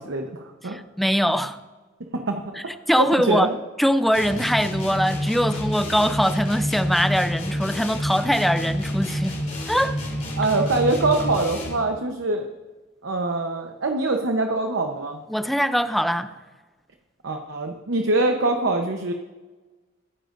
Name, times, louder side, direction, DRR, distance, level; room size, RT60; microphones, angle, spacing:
voice 1, 0.0-0.8 2.1-3.5 10.4-12.5 13.0-15.2 17.2-19.1, right 2 dB, 70° right, 0.9 m, -24 dB
voice 2, 0.6-1.6 2.5-3.5 3.8-9.4 9.7-10.0 15.3-16.3, equal, ahead, 0.4 m, -22 dB
sound 1, 4.1-11.9, equal, 40° left, 3.3 m, -28 dB
22.0 x 10.5 x 2.6 m
head